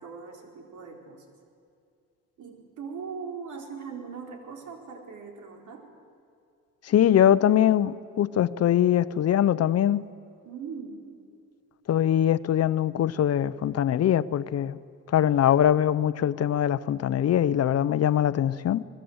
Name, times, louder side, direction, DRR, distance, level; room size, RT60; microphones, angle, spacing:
voice 1, 0.0-1.2 2.4-5.9 10.4-11.0, right 5 dB, 75° right, 3 dB, 4.2 m, -40 dB
voice 2, 6.8-10.1 11.9-14.8 15.1-18.8, left 10 dB, 55° left, 16 dB, 0.7 m, -22 dB
25.0 x 20.5 x 8.0 m, 2.4 s
cardioid pair, 90°, 30 cm